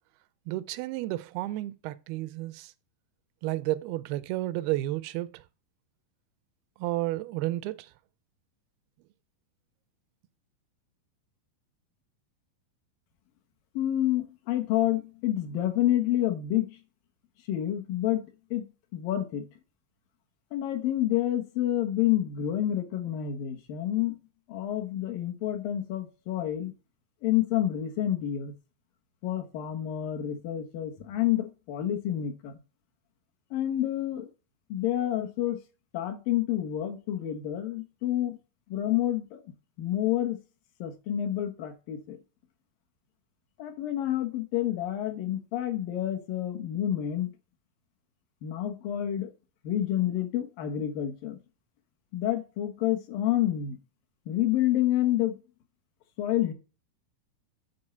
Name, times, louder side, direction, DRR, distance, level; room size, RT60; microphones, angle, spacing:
voice 1, 0.5-2.7 3.4-5.4 6.8-7.9, right 17 dB, 85° right, 2.4 m, -32 dB
voice 2, 13.7-16.8 17.5-18.7 18.9-19.4 20.5-24.2 24.5-26.7 27.2-28.5 29.2-32.6 33.5-34.3 34.7-35.6 35.9-38.4 38.7-39.4 39.8-40.4 40.8-42.2 43.6-47.3 48.4-49.3 49.6-51.4 52.1-53.8 54.3-55.4 56.2-56.5, left 12 dB, 70° left, 2.6 m, -28 dB
9.7 x 4.6 x 4.3 m
omnidirectional pair, 4.5 m